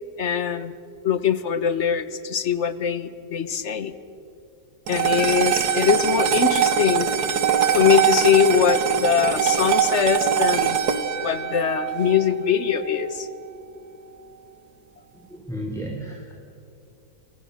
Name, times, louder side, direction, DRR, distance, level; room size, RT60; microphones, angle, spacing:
voice 1, 0.2-0.7 1.0-3.9 4.9-7.1 7.7-10.8 11.2-13.3, left 8 dB, 45° left, 13 dB, 1.2 m, -22 dB
sound 1, 4.9-13.4, right 9 dB, 60° right, 1.9 m, -23 dB
voice 2, 15.1-16.3, equal, ahead, 0 dB, 2.9 m, -33 dB
29.0 x 25.5 x 6.6 m, 2.7 s
omnidirectional pair, 1.9 m